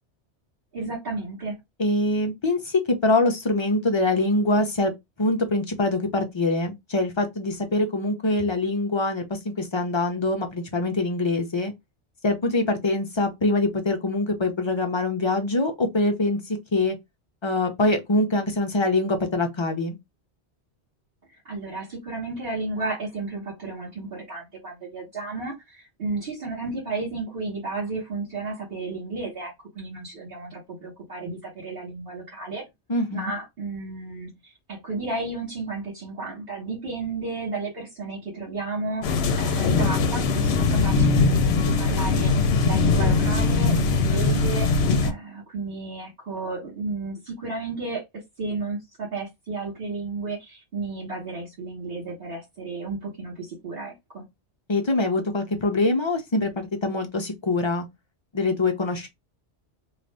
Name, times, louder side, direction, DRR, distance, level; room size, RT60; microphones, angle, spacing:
voice 1, 0.7-1.6 21.3-32.6 33.1-42.3 42.6-44.7 45.0-54.2, right 3 dB, 55° right, 1.4 m, -33 dB
voice 2, 1.8-4.9 5.2-11.7 12.2-17.0 17.4-20.0 32.9-33.3 54.7-57.8 58.3-59.1, left 2 dB, 45° left, 0.4 m, -24 dB
sound 1, 39.0-45.1, left 4 dB, 65° left, 0.8 m, -21 dB
2.5 x 2.4 x 3.2 m
omnidirectional pair, 1.2 m